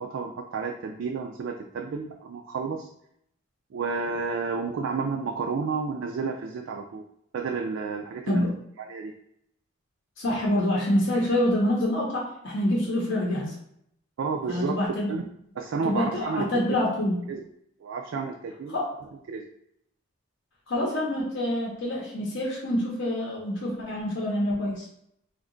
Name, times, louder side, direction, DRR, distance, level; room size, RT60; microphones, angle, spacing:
voice 1, 0.0-2.9 3.7-7.0 7.3-8.4 8.9-9.1 14.2-14.8 15.1-15.2 15.6-16.6 17.3-17.4 17.8-18.8 19.3-19.5, right 4 dB, 65° right, 2 dB, 0.3 m, -31 dB
voice 2, 10.2-13.5 14.5-15.1 15.8-17.2 18.7-18.9 20.7-24.9, left 1 dB, 60° left, -4 dB, 0.7 m, -26 dB
2.8 x 2.2 x 3.7 m, 0.74 s
head